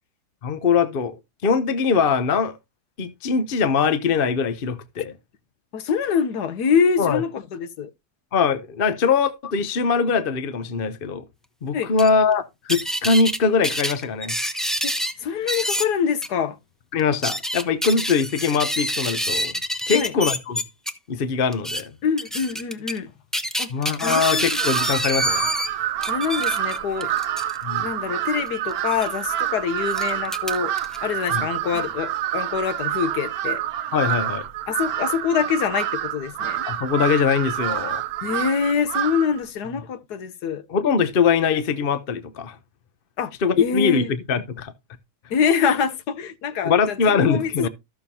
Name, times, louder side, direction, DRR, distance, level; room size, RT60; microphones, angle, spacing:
voice 1, 0.4-2.6 3.0-5.1 7.0-7.2 8.3-11.2 11.6-14.4 16.9-19.5 19.9-20.6 21.1-21.9 23.7-25.5 27.6-27.9 31.3-31.4 33.9-34.5 36.7-38.0 40.7-42.6 43.4-44.7 46.6-47.7, left 5 dB, 50° left, 0.7 m, -22 dB
voice 2, 5.7-7.9 11.7-11.9 14.8-14.9 15.2-16.6 19.9-20.1 22.0-23.1 23.6-24.7 26.1-27.1 27.8-30.7 31.0-33.6 34.7-36.6 38.2-40.6 43.2-43.3 43.6-44.1 45.3-47.7, left 7 dB, 80° left, 1.4 m, -25 dB
sound 1, 12.0-12.1 12.7-13.4 13.6-15.1 15.5-15.9 16.2-16.3 17.0-20.9 21.5-21.8 22.2-23.0 23.3-25.7 26.0-27.6 28.9-29.1 29.9-31.0, equal, ahead, 0.5 m, -27 dB
Crow, 24.0-39.4, right 12 dB, 70° right, 1.2 m, -27 dB
13.5 x 6.9 x 2.8 m
omnidirectional pair, 1.7 m